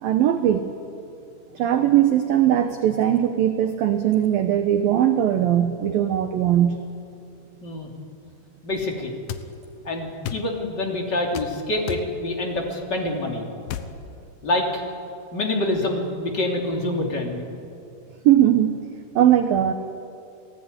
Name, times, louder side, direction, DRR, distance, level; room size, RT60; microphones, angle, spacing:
voice 1, 0.0-0.7 1.6-6.8 18.2-18.8 19.2-19.7, right 11 dB, 80° right, 7 dB, 2.1 m, -19 dB
voice 2, 8.6-9.1 9.8-13.5 14.4-14.8 15.3-17.4, left 2 dB, 25° left, 1 dB, 2.7 m, -26 dB
sound 1, 9.3-9.5 10.2-10.5 11.3-11.5 11.9-12.1 13.7-13.9, left 10 dB, 90° left, 1.9 m, -31 dB
29.5 x 18.0 x 9.7 m, 2.6 s
omnidirectional pair, 5.6 m